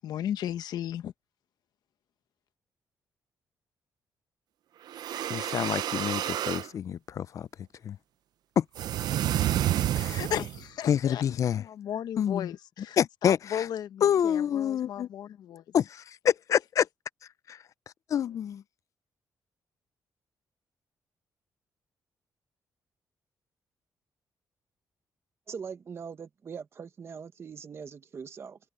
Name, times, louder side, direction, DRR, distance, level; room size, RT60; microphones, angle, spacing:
voice 1, 0.0-1.1 10.1-11.2 11.5-15.6, left 10 dB, 80° left, 1.1 m, -35 dB
sound 1, 4.9-6.7 8.8-10.6, right 12 dB, 80° right, 0.6 m, -29 dB
voice 2, 5.3-7.5 7.8-8.0 8.6-8.7 10.0-10.2 10.9-11.6 12.2-12.5 13.0-13.7 14.0-15.1 15.7-16.9 17.5-17.6 18.1-18.6, left 9 dB, 50° left, 0.4 m, -27 dB
voice 3, 25.5-28.6, right 6 dB, 40° right, 1.2 m, -41 dB
open air
cardioid pair, 145°, 7 cm